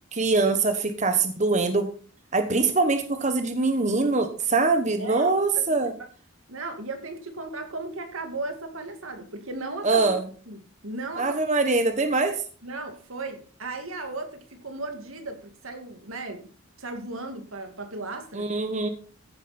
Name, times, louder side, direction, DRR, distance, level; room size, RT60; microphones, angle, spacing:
voice 1, 0.1-1.9 2.3-5.9 9.8-10.2 11.2-12.4 18.3-18.9, right 3 dB, 35° right, 1.2 m, -23 dB
voice 2, 5.0-5.8 6.5-10.1 10.5-11.5 12.6-16.5 16.8-18.5, right 2 dB, 80° right, 2.3 m, -36 dB
15.0 x 9.2 x 4.4 m
head